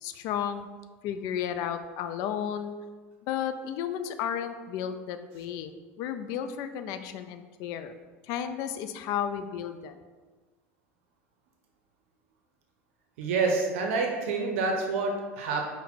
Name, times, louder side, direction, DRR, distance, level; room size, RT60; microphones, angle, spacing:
voice 1, 0.0-0.7 1.0-2.7 3.2-7.9 8.2-10.0, left 9 dB, 60° left, 9 dB, 0.4 m, -33 dB
voice 2, 13.2-15.7, right 4 dB, 75° right, 2 dB, 0.6 m, -28 dB
5.6 x 2.1 x 4.0 m, 1.4 s
hypercardioid pair, 90°, 7 cm